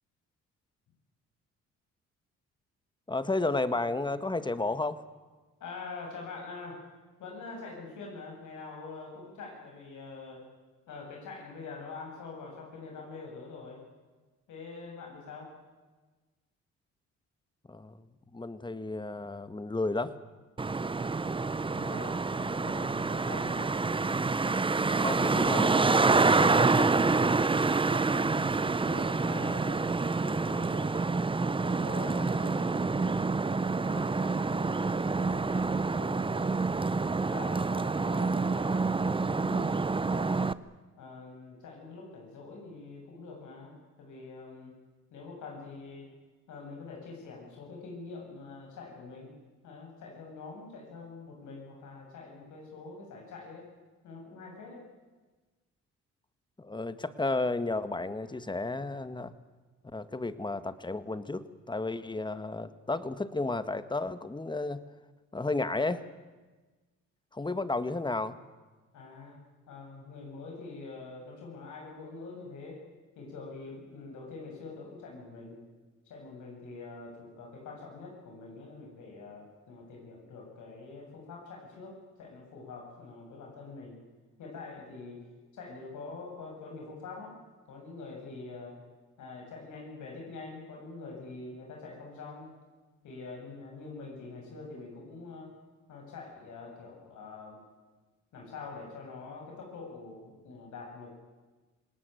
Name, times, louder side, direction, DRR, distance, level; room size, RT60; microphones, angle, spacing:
voice 1, 3.1-5.0 17.7-18.1 18.3-20.1 24.9-27.2 56.6-59.3 59.9-64.8 65.3-66.0 67.3-68.4, left 2 dB, 15° left, 12 dB, 1.6 m, -33 dB
voice 2, 5.6-6.8 7.2-10.4 10.9-13.8 14.5-15.5 21.7-23.7 28.1-31.1 31.6-36.5 37.1-40.5 41.0-44.7 45.1-46.1 46.5-49.3 49.6-53.7 54.0-54.8 68.9-69.4 69.7-72.8 73.1-75.6 76.1-84.0 84.4-85.2 85.5-87.4 87.7-88.8 89.2-92.5 93.0-95.5 95.9-97.6 98.3-101.1, left 4 dB, 75° left, 0 dB, 7.8 m, -45 dB
Traffic noise roadway noise, 20.6-40.5, right 4 dB, 15° right, 0.7 m, -27 dB
27.0 x 18.5 x 9.3 m, 1.3 s
cardioid pair, 90°, 30 cm